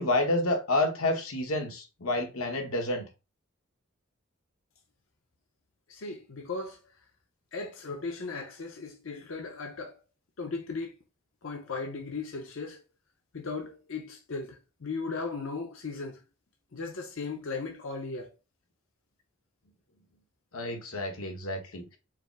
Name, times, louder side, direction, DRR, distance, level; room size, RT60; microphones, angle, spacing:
voice 1, 0.0-3.0 20.5-22.0, left 2 dB, 90° left, 1.1 m, -29 dB
voice 2, 5.9-6.8 7.5-10.0 10.4-10.9 11.4-12.8 13.3-16.2 16.7-18.3, left 4 dB, 70° left, 0.7 m, -37 dB
4.9 x 2.0 x 4.5 m
head